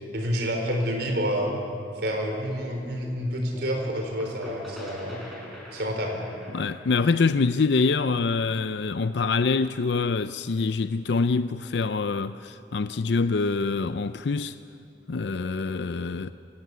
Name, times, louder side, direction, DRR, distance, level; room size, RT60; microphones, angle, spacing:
voice 1, 0.1-1.5 2.0-5.2 5.7-6.2, equal, 65° right, 4.3 m, -28 dB
sound 1, 3.5-9.1, left 1 dB, ahead, 5.4 m, -44 dB
voice 2, 6.5-14.6 15.1-16.3, left 4 dB, 65° left, 0.5 m, -25 dB
26.5 x 17.0 x 8.3 m
head